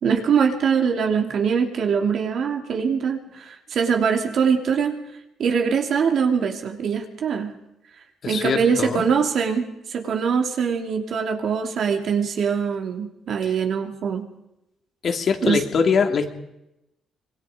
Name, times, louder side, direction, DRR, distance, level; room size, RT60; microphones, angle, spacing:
voice 1, 0.0-5.0 5.4-7.6 8.3-14.2 15.4-15.6, right 6 dB, 65° right, 3 dB, 3.0 m, -23 dB
voice 2, 8.2-9.1 13.4-13.5 15.0-16.3, left 6 dB, 55° left, 4 dB, 2.8 m, -22 dB
25.0 x 21.5 x 5.1 m, 0.89 s
cardioid pair, 90°, 0 cm